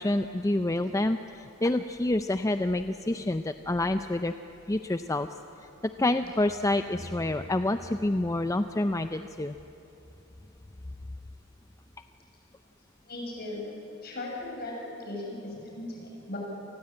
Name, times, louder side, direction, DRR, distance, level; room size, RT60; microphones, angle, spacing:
voice 1, 0.0-4.3 4.7-5.3 6.0-9.5, left 1 dB, 15° left, 9 dB, 0.5 m, -28 dB
voice 2, 13.1-13.7 14.0-14.7 15.0-16.4, left 2 dB, 50° left, -1 dB, 7.6 m, -37 dB
28.5 x 19.5 x 8.9 m, 2.9 s
head